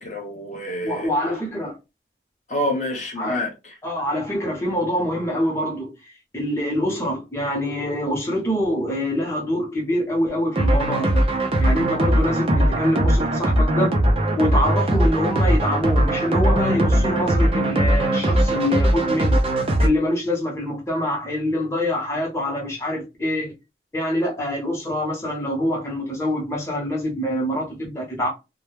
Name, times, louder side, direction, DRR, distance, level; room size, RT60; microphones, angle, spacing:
voice 1, 0.0-1.1 2.5-3.8, left 1 dB, 40° left, 0.9 m, -27 dB
voice 2, 0.8-1.8 3.2-3.4 3.8-5.9 6.3-11.2 11.6-13.9 14.4-19.4 19.8-23.5 23.9-28.3, left 1 dB, 15° left, 0.8 m, -25 dB
sound 1, 10.6-19.9, right 1 dB, 35° right, 0.5 m, -20 dB
2.2 x 2.1 x 3.1 m
head